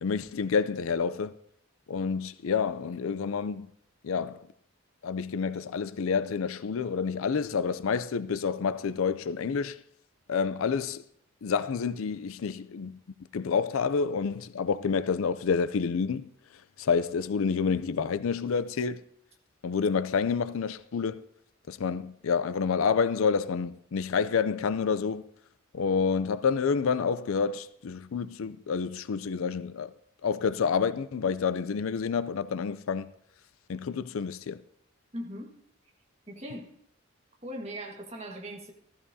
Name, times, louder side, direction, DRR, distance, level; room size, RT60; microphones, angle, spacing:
voice 1, 0.0-1.4 1.9-3.7 4.0-4.5 5.0-9.8 10.3-11.0 11.4-13.0 13.3-16.3 16.8-19.0 19.6-21.2 21.7-25.2 25.7-29.9 30.2-33.1 33.7-34.6, left 5 dB, 70° left, 0.4 m, -28 dB
voice 2, 35.1-35.5 36.3-36.7 37.4-38.7, equal, 30° right, 1.6 m, -39 dB
14.5 x 14.0 x 2.7 m
head